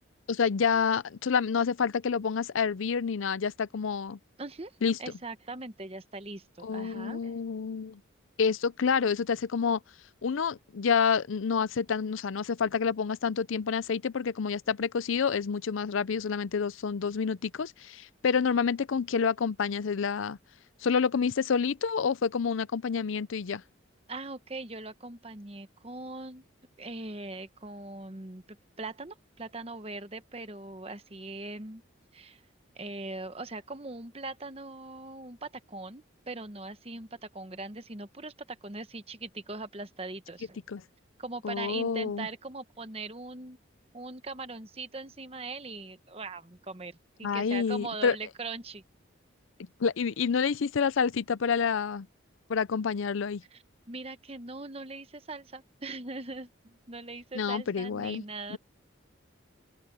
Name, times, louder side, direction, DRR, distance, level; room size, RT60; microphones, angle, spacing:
voice 1, 0.3-4.2 4.8-5.0 6.6-8.0 8.4-9.8 10.2-20.4 20.8-23.6 40.7-40.8 41.4-42.3 47.2-48.2 49.8-52.1 52.5-53.4 57.3-58.2, left 6 dB, 80° left, 0.5 m, -28 dB
voice 2, 4.4-4.7 5.0-7.3 24.1-26.4 26.8-28.4 28.8-31.8 32.1-32.4 32.7-40.6 41.2-43.6 43.9-48.8 53.5-58.6, right 3 dB, 30° right, 1.1 m, -41 dB
open air
head